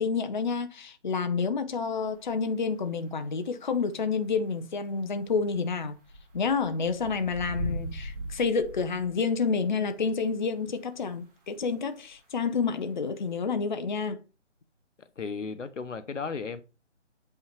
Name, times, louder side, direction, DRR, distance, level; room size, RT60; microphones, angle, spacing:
voice 1, 0.0-6.0 6.3-14.2, left 5 dB, 40° left, 0.6 m, -29 dB
sound 1, 2.1-2.3 4.2-4.3 5.3-9.5 11.1-11.2 12.1-12.2 12.6-12.7 13.4-13.5, right 1 dB, 50° right, 3.7 m, -39 dB
voice 2, 15.2-16.6, left 5 dB, 85° left, 1.0 m, -34 dB
7.8 x 5.5 x 3.0 m
figure-of-eight pair, 160°, 36 cm